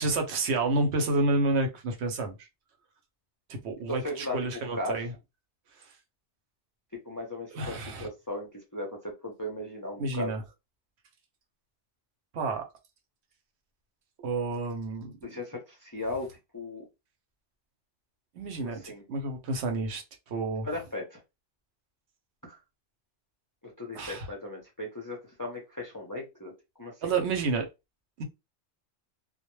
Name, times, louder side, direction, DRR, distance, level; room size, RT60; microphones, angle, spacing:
voice 1, 0.0-2.5 3.5-5.1 5.8-5.9 7.5-8.1 10.0-10.4 12.3-12.6 14.2-15.1 18.4-18.8 19.1-20.7 23.9-24.3 27.0-27.7 28.2-28.3, right 3 dB, 70° right, 0.9 m, -29 dB
voice 2, 4.0-5.0 7.1-10.3 15.2-16.3 16.5-16.9 18.6-19.0 20.6-21.2 22.4-22.6 23.6-26.5 26.8-26.9, left 2 dB, 25° left, 0.4 m, -37 dB
2.2 x 2.0 x 3.0 m
omnidirectional pair, 1.2 m